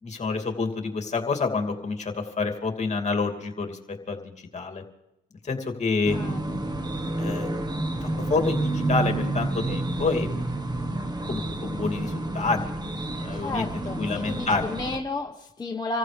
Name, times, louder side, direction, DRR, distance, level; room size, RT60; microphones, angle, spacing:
voice 1, 0.0-4.8 5.4-6.2 7.2-7.5 8.0-10.5 11.3-12.6 13.2-13.6 14.0-14.8, left 4 dB, 35° left, 4 dB, 2.7 m, -28 dB
sound 1, 6.0-15.0, right 2 dB, 20° right, 1.5 m, -29 dB
voice 2, 6.1-6.4 13.3-16.0, left 3 dB, 20° left, 0 dB, 1.3 m, -32 dB
27.0 x 15.0 x 3.4 m, 0.90 s
cardioid pair, 90°, 20 cm